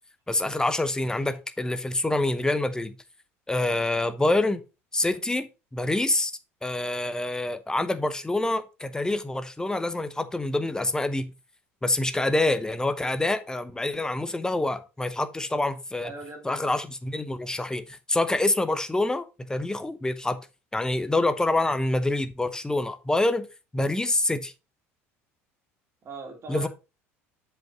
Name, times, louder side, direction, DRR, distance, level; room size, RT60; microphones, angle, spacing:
voice 1, 0.3-2.9 3.5-4.6 4.9-6.3 6.6-11.3 11.8-16.1 16.4-20.4 20.7-23.5 23.7-24.5 26.5-26.7, left 2 dB, 10° left, 1.0 m, -26 dB
voice 2, 16.0-16.7 26.0-26.7, right 3 dB, 40° right, 3.1 m, -40 dB
7.5 x 5.7 x 4.0 m
figure-of-eight pair, 65°, 7 cm